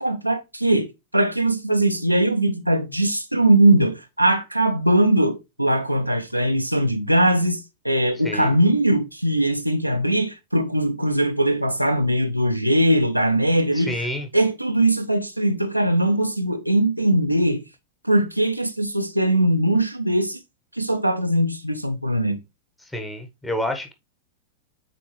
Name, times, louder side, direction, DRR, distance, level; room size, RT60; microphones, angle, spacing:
voice 1, 0.0-0.9 1.1-13.9 14.3-17.6 18.0-20.4 20.8-22.4, right 1 dB, 90° right, 0.7 m, -20 dB
voice 2, 13.7-14.3 22.9-23.9, left 1 dB, 10° left, 1.3 m, -28 dB
8.4 x 3.5 x 3.2 m
figure-of-eight pair, 90°, 0 cm